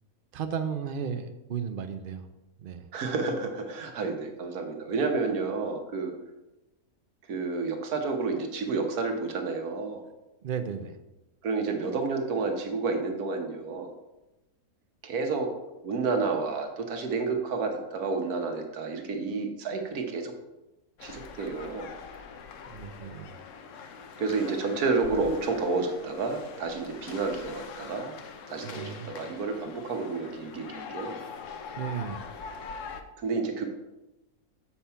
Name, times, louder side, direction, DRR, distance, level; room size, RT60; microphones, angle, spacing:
voice 1, 0.3-2.3 2.6-2.9 10.4-11.0 22.7-23.3 28.6-29.1 31.8-32.2, right 7 dB, 55° right, 9 dB, 0.6 m, -34 dB
voice 2, 2.9-6.1 7.3-10.0 11.4-13.9 15.0-15.5 15.8-20.3 21.0-21.9 24.2-28.1 28.5-31.2 33.2-33.7, right 4 dB, 85° right, 4 dB, 1.5 m, -30 dB
sound 1, 21.0-33.0, left 5 dB, 65° left, 1.0 m, -43 dB
7.1 x 5.9 x 4.4 m, 0.97 s
omnidirectional pair, 1.5 m